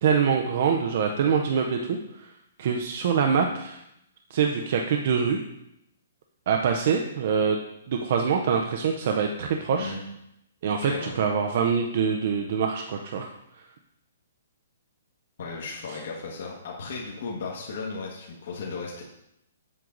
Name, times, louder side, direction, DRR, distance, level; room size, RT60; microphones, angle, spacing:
voice 1, 0.0-2.3 2.6-3.8 4.3-5.4 6.5-7.6 7.9-9.9 10.6-13.3, right 6 dB, 40° right, 2 dB, 0.6 m, -24 dB
voice 2, 10.7-11.1 15.4-19.0, left 4 dB, 45° left, -3 dB, 1.5 m, -35 dB
7.8 x 7.3 x 3.9 m, 0.82 s
hypercardioid pair, 180°, 0 cm